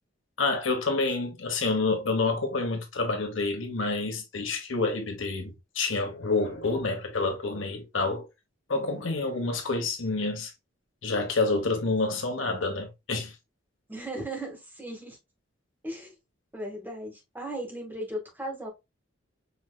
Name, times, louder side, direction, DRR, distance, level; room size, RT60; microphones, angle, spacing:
voice 1, 0.4-8.3 8.7-10.5 11.0-13.3, left 3 dB, 85° left, 1.3 m, -28 dB
voice 2, 13.9-15.2 15.8-16.1 16.5-18.7, right 1 dB, 10° right, 1.8 m, -37 dB
5.5 x 3.3 x 2.3 m
head